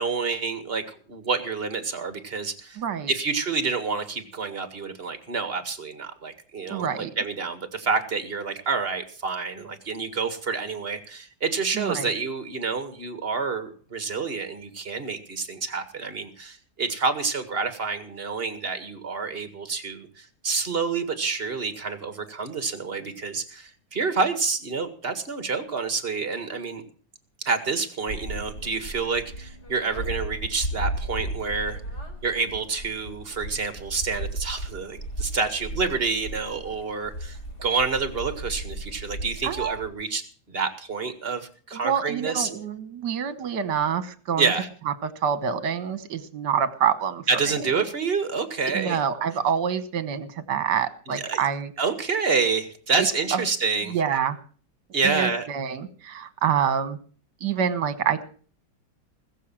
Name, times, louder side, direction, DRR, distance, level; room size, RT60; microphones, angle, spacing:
voice 1, 0.0-2.8 3.1-26.8 27.5-31.8 32.2-40.2 40.5-42.5 44.4-44.7 47.3-49.0 51.1-51.4 51.8-54.0 54.9-55.5, right 4 dB, 30° right, 9 dB, 2.0 m, -28 dB
voice 2, 2.8-3.1 6.7-7.1 11.7-12.1 39.4-39.8 41.7-44.5 45.0-47.2 48.7-51.7 53.0-53.1 53.3-53.4 53.9-54.4 55.0-57.0 57.4-58.2, right 8 dB, 65° right, 12 dB, 1.9 m, -26 dB
sound 1, 28.1-39.9, right 1 dB, 35° left, 3.9 m, -35 dB
20.5 x 7.5 x 7.5 m, 0.43 s
omnidirectional pair, 2.1 m